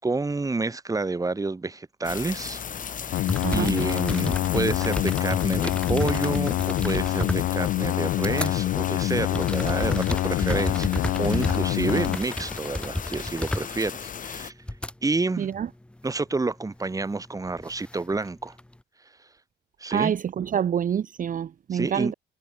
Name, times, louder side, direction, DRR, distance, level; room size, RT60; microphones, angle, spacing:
voice 1, 0.0-2.6 3.0-3.2 3.5-14.5 15.0-15.5 16.0-18.5 19.8-20.1 21.7-22.1, right 3 dB, 15° right, 1.2 m, -29 dB
sound 1, 2.0-14.5, left 7 dB, 40° left, 0.9 m, -36 dB
sound 2, 2.9-3.0 3.2-8.5 8.9-14.9 15.5-16.0 17.2-18.7, left 1 dB, 5° left, 0.7 m, -32 dB
sound 3, 3.1-12.2, left 15 dB, 70° left, 0.4 m, -26 dB
voice 2, 19.9-22.1, right 8 dB, 40° right, 0.6 m, -27 dB
cardioid pair, 90°, 20 cm